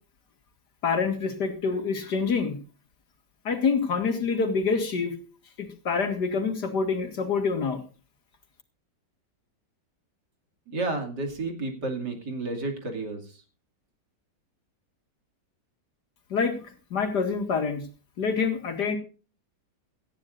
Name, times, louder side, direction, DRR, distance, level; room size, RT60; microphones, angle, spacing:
voice 1, 0.8-2.6 3.4-5.1 5.6-7.8 16.3-17.8 18.2-19.0, left 5 dB, 70° left, 6 dB, 2.6 m, -26 dB
voice 2, 10.7-13.4, right 2 dB, 75° right, 3 dB, 3.2 m, -31 dB
18.0 x 14.0 x 2.6 m, 0.37 s
omnidirectional pair, 1.8 m